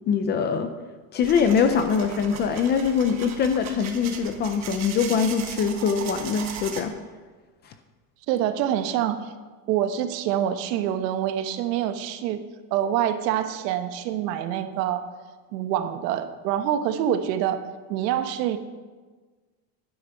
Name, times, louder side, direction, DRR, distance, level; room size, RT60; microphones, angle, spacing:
voice 1, 0.1-0.7 1.1-6.9 7.7-7.8, left 6 dB, 25° left, 8 dB, 0.3 m, -23 dB
sound 1, 1.2-6.8, right 7 dB, 35° right, 1.5 m, -38 dB
voice 2, 8.3-9.2 9.7-12.4 12.7-15.0 15.5-17.6 17.9-18.6, right 10 dB, 80° right, 9 dB, 1.3 m, -26 dB
11.5 x 10.5 x 5.7 m, 1.4 s
supercardioid pair, 155°, 48 cm